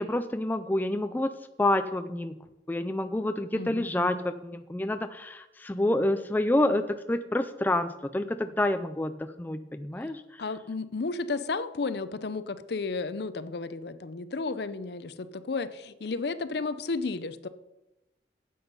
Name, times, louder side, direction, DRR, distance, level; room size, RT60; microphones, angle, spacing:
voice 1, 0.0-1.3 1.6-2.4 2.7-10.2, left 1 dB, 10° left, 9 dB, 0.3 m, -28 dB
voice 2, 3.5-4.3 10.4-17.5, left 3 dB, 60° left, 13 dB, 0.5 m, -33 dB
9.2 x 7.9 x 5.5 m, 0.97 s
head